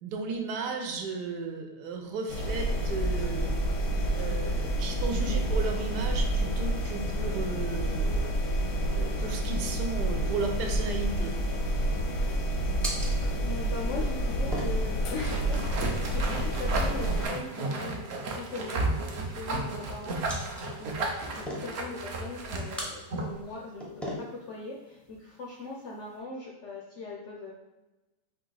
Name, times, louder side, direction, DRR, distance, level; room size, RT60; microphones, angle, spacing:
voice 1, 0.0-3.5 4.1-8.3 8.9-11.3, right 4 dB, 80° right, 3 dB, 1.2 m, -34 dB
sound 1, 2.3-17.3, right 1 dB, 85° left, 1.4 m, -29 dB
sound 2, 12.8-26.2, equal, ahead, 0.3 m, -44 dB
voice 2, 13.4-27.5, left 3 dB, 65° left, -2 dB, 0.7 m, -41 dB
sound 3, 15.2-23.4, right 2 dB, 60° right, 0.7 m, -33 dB
4.7 x 2.8 x 3.9 m, 1.0 s
omnidirectional pair, 1.8 m